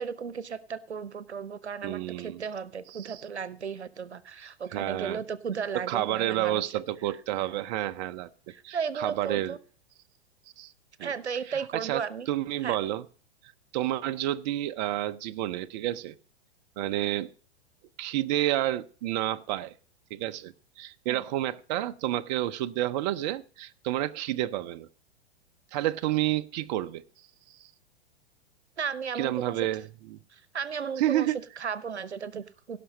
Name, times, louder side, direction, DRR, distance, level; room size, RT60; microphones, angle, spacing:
voice 1, 0.0-6.8 8.5-9.6 11.0-12.3 12.6-12.8 21.1-21.2 28.8-29.6 30.3-32.8, right 6 dB, 85° right, 0.8 m, -35 dB
voice 2, 1.8-2.4 2.9-3.2 4.7-5.2 5.7-8.3 8.6-9.6 10.6-10.7 11.0-11.1 11.5-13.0 13.7-16.1 16.8-17.3 18.0-19.7 20.1-24.9 25.7-27.0 29.1-29.8 30.1-30.2 31.0-31.4, right 14 dB, 40° right, 0.6 m, -30 dB
17.0 x 5.9 x 5.3 m
figure-of-eight pair, 105°, 32 cm